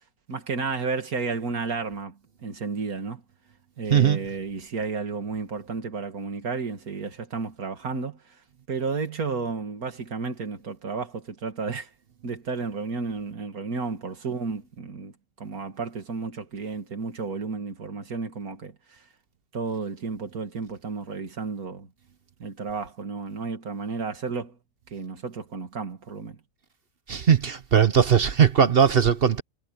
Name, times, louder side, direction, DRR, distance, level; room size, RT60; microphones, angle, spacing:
voice 1, 0.3-3.2 3.8-8.2 8.7-11.9 12.2-15.1 15.4-19.0 19.5-21.9 22.4-24.6 24.9-26.4, right 4 dB, 65° right, 2.7 m, -32 dB
voice 2, 27.1-29.4, right 7 dB, 50° right, 0.8 m, -19 dB
omnidirectional pair, 1.7 m